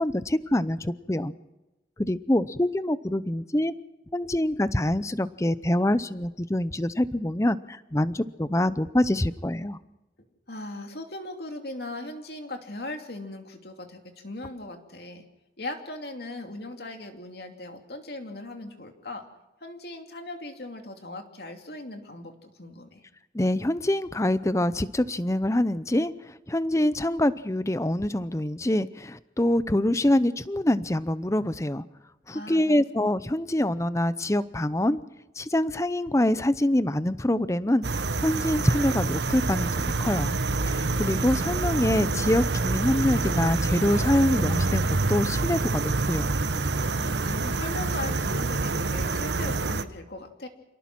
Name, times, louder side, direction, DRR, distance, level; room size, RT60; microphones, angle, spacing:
voice 1, 0.0-1.3 2.0-3.7 4.1-9.8 23.3-31.8 32.3-35.0 35.4-40.3 40.7-46.4, left 1 dB, 15° left, 15 dB, 0.7 m, -25 dB
voice 2, 10.5-15.2 15.6-19.3 19.6-23.0 32.3-32.7 46.9-50.5, left 2 dB, 65° left, 4 dB, 2.7 m, -39 dB
sound 1, 37.8-49.8, right 3 dB, 80° right, 1.0 m, -27 dB
28.0 x 18.5 x 6.2 m, 1.0 s
head